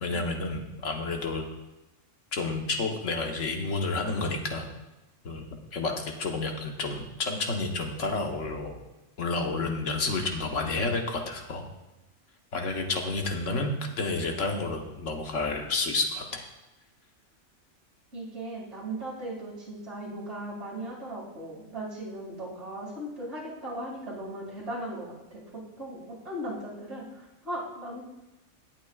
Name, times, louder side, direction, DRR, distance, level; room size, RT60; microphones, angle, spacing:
voice 1, 0.0-1.5 2.3-4.7 5.2-5.4 5.7-8.8 9.2-11.6 12.5-16.4, left 3 dB, 75° left, 2 dB, 1.5 m, -30 dB
voice 2, 18.1-25.4 25.8-28.0, right 1 dB, 60° right, -6 dB, 2.7 m, -37 dB
18.0 x 8.0 x 2.4 m, 0.99 s
omnidirectional pair, 1.3 m